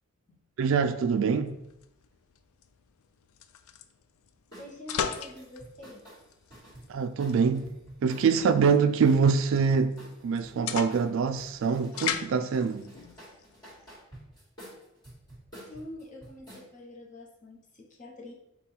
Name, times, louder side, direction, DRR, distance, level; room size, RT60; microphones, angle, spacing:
voice 1, 0.6-1.6 6.9-10.0 10.2-12.9, right 5 dB, 60° right, 0.3 m, -25 dB
sound 1, 1.5-14.0, left 8 dB, 75° left, 0.3 m, -39 dB
sound 2, 4.5-4.7 5.1-8.5 9.0-10.6 10.9-12.2 12.5-16.7, equal, 20° left, 1.7 m, -50 dB
voice 2, 4.6-6.0 15.7-18.3, left 1 dB, 35° left, 0.9 m, -46 dB
5.4 x 2.3 x 4.2 m
head